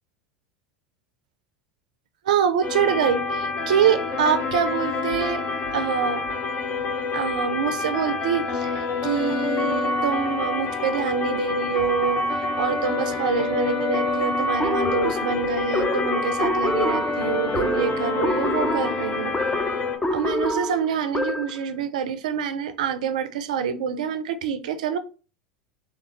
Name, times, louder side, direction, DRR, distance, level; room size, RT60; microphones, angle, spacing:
voice 1, 2.2-5.4 5.7-6.2 7.1-19.3 20.1-25.0, right 7 dB, 70° right, 0.4 m, -26 dB
sound 1, 2.6-20.0, left 3 dB, 40° left, 0.8 m, -27 dB
sound 2, 14.6-21.6, left 2 dB, 15° left, 0.4 m, -27 dB
3.6 x 2.3 x 3.0 m
hypercardioid pair, 80°, 4 cm